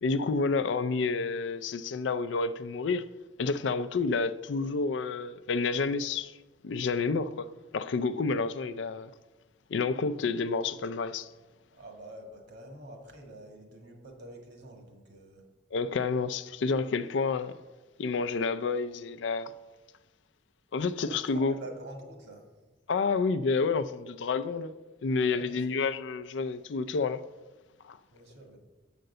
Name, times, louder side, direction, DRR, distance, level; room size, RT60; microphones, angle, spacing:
voice 1, 0.0-3.0 3.4-6.3 6.6-7.5 7.7-9.1 9.7-11.3 15.7-17.5 18.0-19.5 20.7-21.5 22.9-24.7 25.0-27.2 27.8-28.0, left 4 dB, 90° left, 0.4 m, -29 dB
voice 2, 11.7-15.5 20.9-22.5 25.3-25.8 28.1-28.6, right 1 dB, 65° right, 1.6 m, -47 dB
7.8 x 5.2 x 6.6 m
head